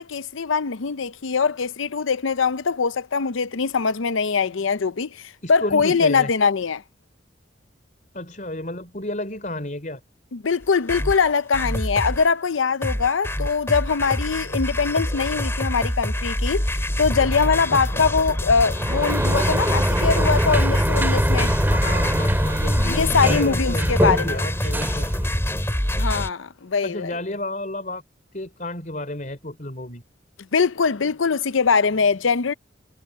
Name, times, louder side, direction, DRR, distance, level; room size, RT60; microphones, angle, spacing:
voice 1, 0.0-6.8 10.3-21.5 22.8-24.4 26.0-27.1 30.5-32.5, left 5 dB, 90° left, 0.7 m, -22 dB
voice 2, 5.4-6.3 8.1-10.0 17.7-18.1 21.7-25.3 26.8-28.0 28.3-30.0, left 1 dB, 40° left, 4.8 m, -32 dB
sound 1, 10.6-12.3 12.8-26.3, left 1 dB, 15° left, 3.7 m, -26 dB
Sliding door, 18.7-25.8, equal, 10° right, 2.3 m, -23 dB
head